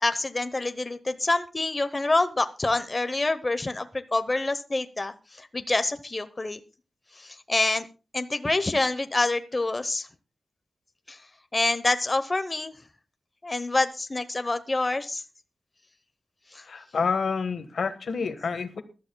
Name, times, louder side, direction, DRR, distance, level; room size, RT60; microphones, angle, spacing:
voice 1, 0.0-6.6 7.2-7.9 8.1-10.1 11.1-11.2 11.5-12.7 13.4-15.2 16.5-16.6, left 2 dB, 25° left, 9 dB, 0.8 m, -27 dB
voice 2, 16.7-18.8, left 5 dB, 80° left, 9 dB, 1.4 m, -28 dB
23.0 x 12.5 x 2.2 m, 0.33 s
wide cardioid pair, 115°, 0 cm